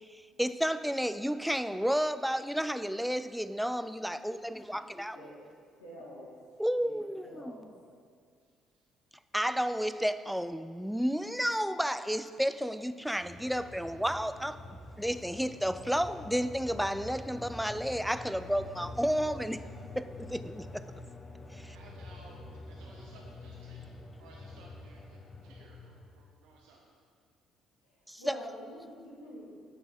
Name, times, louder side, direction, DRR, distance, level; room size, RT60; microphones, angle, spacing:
voice 1, 0.1-5.2 6.6-7.5 9.3-14.6 15.0-19.6 20.0-20.8 21.5-21.7 28.1-28.4, equal, ahead, 13 dB, 0.4 m, -32 dB
voice 2, 5.8-6.3 6.8-6.9 7.2-7.7 28.2-29.5, equal, 80° left, -6 dB, 1.6 m, -46 dB
voice 3, 8.4-8.8 12.7-14.0 21.5-27.0, right 3 dB, 65° right, 0 dB, 0.7 m, -59 dB
sound 1, 13.2-26.3, left 2 dB, 30° left, 0.8 m, -46 dB
9.6 x 5.9 x 5.2 m, 2.1 s
figure-of-eight pair, 45°, 0 cm